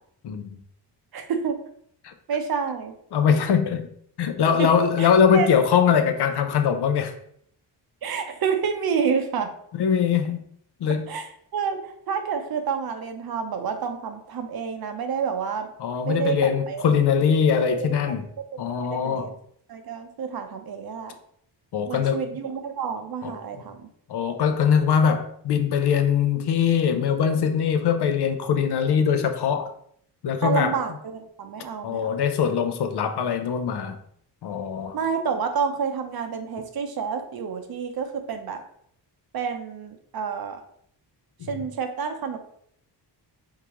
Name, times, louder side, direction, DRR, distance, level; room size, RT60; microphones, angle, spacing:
voice 1, 0.2-0.6 2.0-2.1 3.1-3.9 4.2-7.1 9.7-10.4 10.8-11.1 15.8-18.3 18.6-19.3 21.7-22.3 23.2-23.3 24.1-29.7 30.2-30.8 31.8-34.0 34.4-35.0, left 7 dB, 65° left, 0.6 m, -22 dB
voice 2, 1.1-1.6 2.3-2.9 4.6-4.7 5.0-5.1 5.3-5.5 8.0-9.5 11.1-11.8 12.1-15.7 16.1-16.9 17.8-18.2 18.5-19.3 19.7-21.1 21.9-23.9 30.4-32.1 34.9-38.6 39.3-40.6 41.5-42.4, right 6 dB, 55° right, 0.7 m, -29 dB
4.7 x 3.7 x 2.9 m
wide cardioid pair, 155°, 43 cm